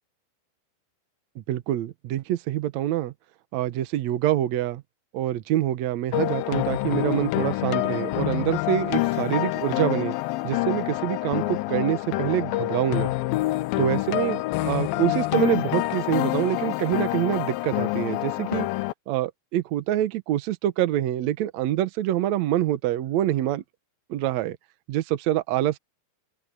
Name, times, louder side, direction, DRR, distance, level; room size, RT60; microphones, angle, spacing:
voice 1, 1.3-3.1 3.5-4.8 5.1-10.1 10.4-13.1 13.8-18.7 19.1-23.6 24.1-24.6 24.9-25.8, right 13 dB, 85° right, 1.5 m, -26 dB
sound 1, 6.1-18.9, left 19 dB, 80° left, 2.2 m, -27 dB
open air
omnidirectional pair, 4.7 m